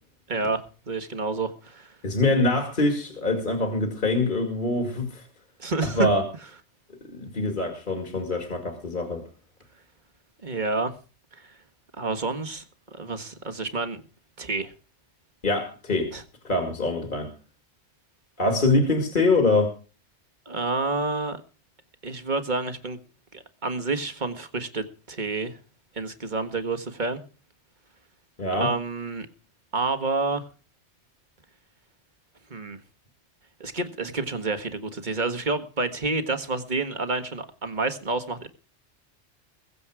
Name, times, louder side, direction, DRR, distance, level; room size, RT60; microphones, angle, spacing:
voice 1, 0.3-2.0 5.6-6.1 10.4-10.9 11.4-11.5 12.0-12.6 12.9-14.0 14.4-14.7 16.1-16.2 20.5-21.4 22.0-23.0 23.3-25.6 26.0-27.2 28.5-29.3 29.7-30.4 32.5-32.8 33.6-38.5, right 3 dB, 40° right, 1.7 m, -29 dB
voice 2, 2.0-5.3 5.8-6.2 7.1-9.2 15.4-16.1 16.4-17.3 18.4-19.7 28.4-28.7, left 2 dB, 45° left, 2.4 m, -24 dB
22.0 x 7.6 x 4.9 m
omnidirectional pair, 1.2 m